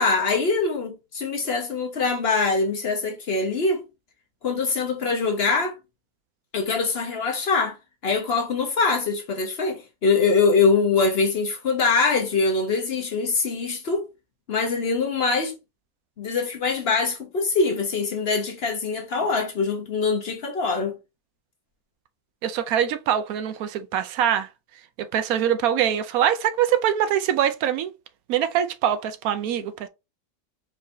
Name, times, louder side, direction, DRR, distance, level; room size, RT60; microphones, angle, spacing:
voice 1, 0.0-3.8 4.4-5.7 6.5-7.8 8.0-14.0 14.5-15.6 16.2-21.0, left 4 dB, 50° left, 0.9 m, -23 dB
voice 2, 22.4-24.5 25.0-27.9 28.3-29.9, right 10 dB, 75° right, 1.0 m, -23 dB
4.6 x 3.0 x 2.6 m
omnidirectional pair, 1.6 m